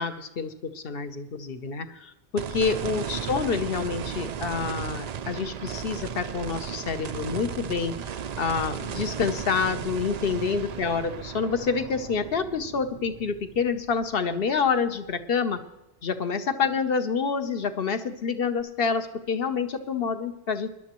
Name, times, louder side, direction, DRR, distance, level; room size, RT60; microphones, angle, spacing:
voice 1, 0.0-7.9 8.4-15.6 16.0-20.7, left 5 dB, 55° left, 9 dB, 1.1 m, -27 dB
sound 1, 2.4-14.7 15.2-15.3 18.6-18.7, right 8 dB, 60° right, 0.4 m, -35 dB
21.0 x 11.5 x 3.1 m, 0.94 s
omnidirectional pair, 1.2 m